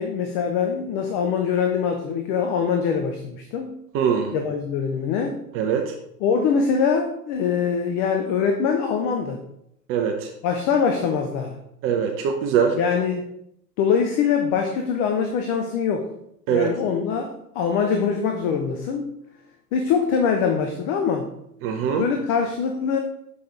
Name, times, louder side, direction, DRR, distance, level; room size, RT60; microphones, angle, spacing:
voice 1, 0.0-3.8 4.3-5.4 6.2-9.4 10.4-11.6 12.8-13.2 13.8-16.1 16.5-19.0 19.7-21.3 22.0-23.0, left 6 dB, 20° left, 4 dB, 0.4 m, -23 dB
voice 2, 3.9-4.3 5.5-5.9 9.9-10.3 11.8-12.8 16.5-16.7 21.6-22.0, right 7 dB, 30° right, 5 dB, 0.6 m, -22 dB
6.6 x 5.6 x 3.6 m, 0.77 s
figure-of-eight pair, 95°, 47 cm